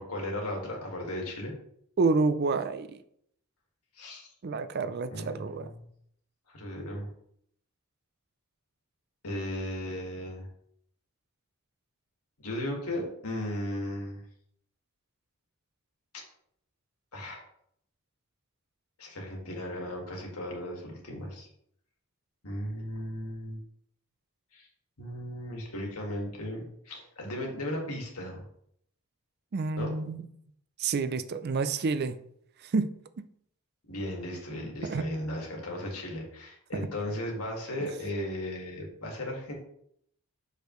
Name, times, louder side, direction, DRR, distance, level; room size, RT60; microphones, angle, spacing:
voice 1, 0.0-1.5 3.9-4.3 5.1-5.8 6.5-7.1 9.2-10.5 12.4-14.2 16.1-16.2 17.1-17.4 19.0-21.5 22.4-23.6 24.5-24.7 25.0-28.5 29.8-29.9 33.9-39.5, left 1 dB, 85° left, 0 dB, 1.9 m, -36 dB
voice 2, 2.0-3.0 4.4-5.7 29.5-30.2 30.8-32.2 32.6-32.9 33.2-33.3 34.8-35.0 37.7-37.9, right 4 dB, 45° right, 12 dB, 0.4 m, -29 dB
6.5 x 5.0 x 3.1 m, 0.70 s
head